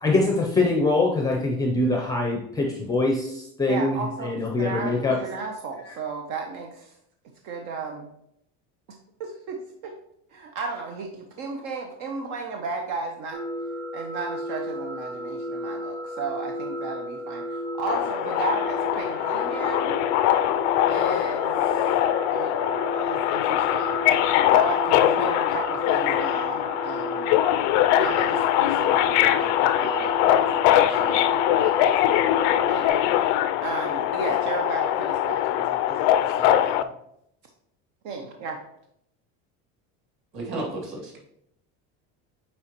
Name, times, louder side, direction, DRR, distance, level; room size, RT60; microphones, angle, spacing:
voice 1, 0.0-5.2, left 2 dB, 10° left, 0 dB, 0.6 m, -23 dB
voice 2, 3.7-6.9 7.4-8.1 9.2-9.9 10.3-13.4 13.9-20.0 20.9-21.9 22.3-22.6 22.9-24.0 24.5-27.3 28.0-33.3 33.6-36.9 38.0-38.6, right 4 dB, 60° right, 3 dB, 0.8 m, -35 dB
sound 1, 13.3-32.9, equal, 85° right, 1.5 m, -33 dB
Subway metro underground, 17.9-36.8, left 12 dB, 90° left, 0.5 m, -22 dB
voice 3, 40.3-41.2, right 2 dB, 40° right, -2 dB, 2.3 m, -32 dB
8.7 x 4.4 x 2.9 m, 0.76 s
cardioid pair, 170°, 34 cm